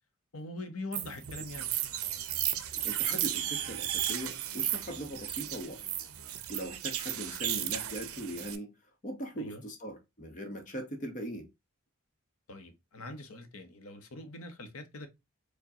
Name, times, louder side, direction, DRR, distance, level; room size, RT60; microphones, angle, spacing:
voice 1, 0.3-1.7 9.3-9.6 12.5-15.1, left 2 dB, 85° left, 0.8 m, -43 dB
sound 1, 0.9-8.6, right 11 dB, 85° right, 0.5 m, -34 dB
voice 2, 2.7-5.9 6.5-8.7 9.0-11.5, right 1 dB, 35° left, 0.9 m, -40 dB
4.6 x 2.2 x 2.7 m
head